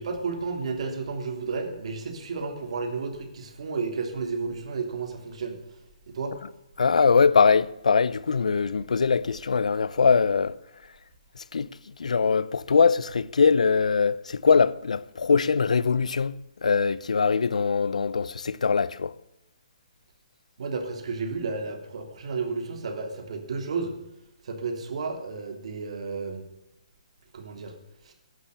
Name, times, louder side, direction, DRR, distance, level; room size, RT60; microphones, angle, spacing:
voice 1, 0.0-5.6 6.1-6.3 20.6-23.9 24.4-26.4 27.3-27.7 28.1-28.2, right 4 dB, 60° right, 3.3 m, -32 dB
voice 2, 6.8-10.6 11.4-11.7 12.0-16.3 16.6-19.1, left 5 dB, 85° left, 0.7 m, -22 dB
14.0 x 11.0 x 7.0 m
hypercardioid pair, 150°, 4 cm